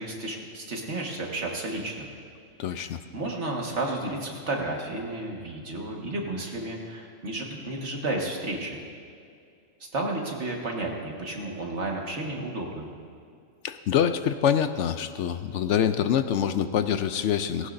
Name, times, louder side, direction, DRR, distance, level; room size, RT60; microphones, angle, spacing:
voice 1, 0.0-2.1 2.7-8.8 9.9-12.9, right 2 dB, 60° right, 0 dB, 1.9 m, -32 dB
voice 2, 2.6-3.0 13.6-17.7, left 9 dB, 70° left, 10 dB, 0.8 m, -25 dB
18.0 x 17.0 x 2.6 m, 2.3 s
omnidirectional pair, 1.3 m